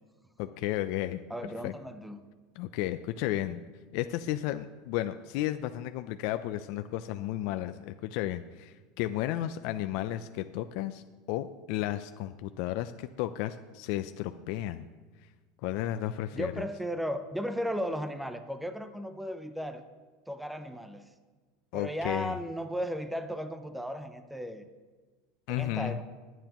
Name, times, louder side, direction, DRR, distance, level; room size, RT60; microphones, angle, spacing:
voice 1, 0.4-1.2 1.6-1.7 2.6-3.6 3.9-11.0 11.3-14.9 15.6-16.6 21.7-22.4 25.5-26.0, left 13 dB, 60° left, 9 dB, 0.4 m, -33 dB
voice 2, 1.3-2.2 16.3-19.8 20.3-21.1 21.7-24.6 25.5-26.0, equal, ahead, 9 dB, 0.6 m, -35 dB
21.5 x 9.1 x 3.0 m, 1.3 s
supercardioid pair, 145°, 0 cm